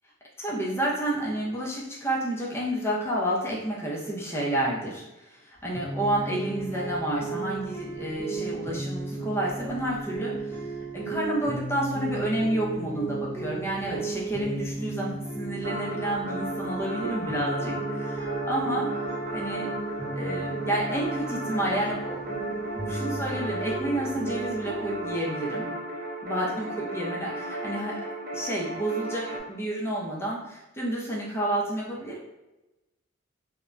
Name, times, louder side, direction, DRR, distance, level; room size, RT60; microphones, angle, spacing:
voice 1, 0.4-10.6 10.9-19.7 20.1-22.3 22.9-25.7 26.2-28.1 28.3-32.3, right 1 dB, 10° left, -4 dB, 0.5 m, -30 dB
sound 1, 5.7-25.1, right 3 dB, 10° right, 0.8 m, -35 dB
sound 2, 15.6-29.4, right 1 dB, 45° right, 0.5 m, -35 dB
2.2 x 2.1 x 3.6 m, 1.0 s
head